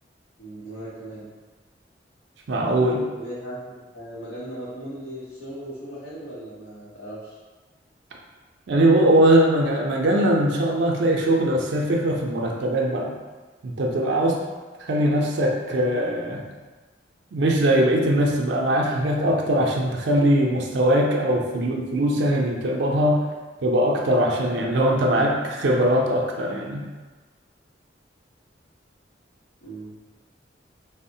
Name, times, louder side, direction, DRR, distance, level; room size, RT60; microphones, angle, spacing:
voice 1, 0.4-1.3 3.1-7.4 29.6-29.9, right 1 dB, 85° left, -10 dB, 0.7 m, -37 dB
voice 2, 2.5-3.0 8.7-13.1 13.6-14.4 14.8-16.4 17.3-23.2 23.6-26.8, right 1 dB, 75° right, -1 dB, 0.4 m, -21 dB
3.5 x 2.0 x 2.6 m, 1.3 s
head